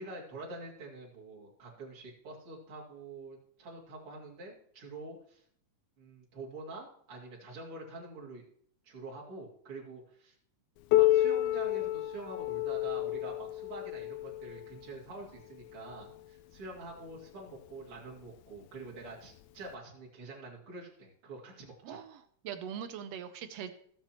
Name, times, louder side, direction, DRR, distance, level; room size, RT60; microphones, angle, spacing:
voice 1, 0.0-5.4 6.0-8.4 8.8-10.4 10.9-22.0, right 2 dB, 45° right, -3 dB, 3.3 m, -46 dB
Piano, 10.9-16.2 17.1-17.2 17.7-17.8 18.6-18.7 19.7-19.8, left 15 dB, 80° left, 1.9 m, -30 dB
voice 2, 21.8-23.7, right 8 dB, 70° right, 9 dB, 1.6 m, -42 dB
16.5 x 7.3 x 3.0 m, 0.63 s
omnidirectional pair, 3.5 m